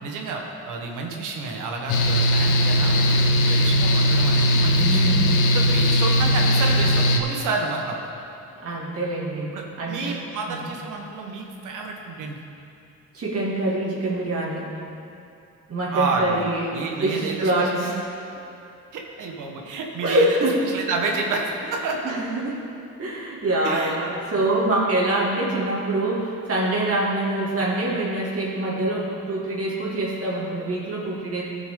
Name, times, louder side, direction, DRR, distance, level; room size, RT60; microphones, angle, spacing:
voice 1, 0.0-5.1 5.4-8.1 9.5-12.4 15.9-17.7 18.9-20.4 20.7-21.4 21.7-22.0 23.6-23.9, right 4 dB, 85° right, 1 dB, 1.3 m, -30 dB
Mechanical fan, 1.9-7.2, equal, 85° left, 0.9 m, -19 dB
voice 2, 4.8-5.4 8.6-9.5 9.8-10.1 10.5-10.7 13.1-14.7 15.7-18.0 20.0-20.7 22.0-22.6 23.0-31.4, right 1 dB, 50° right, -5 dB, 2.5 m, -25 dB
14.0 x 6.0 x 3.8 m, 2.7 s
cardioid pair, 90°, 30 cm